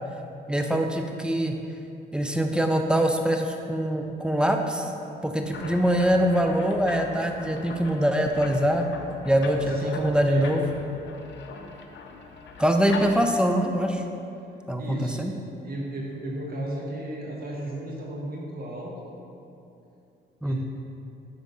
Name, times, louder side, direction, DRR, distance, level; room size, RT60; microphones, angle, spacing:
voice 1, 0.5-1.5 2.1-4.9 5.2-8.9 9.2-10.6 12.6-14.0 14.7-15.3 20.4-20.6, equal, 5° right, 4 dB, 0.6 m, -23 dB
sound 1, 5.4-13.4, left 4 dB, 65° left, 0.7 m, -40 dB
voice 2, 9.6-10.0 10.3-10.5 14.8-15.3 15.6-19.0 20.4-20.6, right 1 dB, 50° right, -3 dB, 1.4 m, -34 dB
7.5 x 3.6 x 5.4 m, 2.8 s
cardioid pair, 90°, 20 cm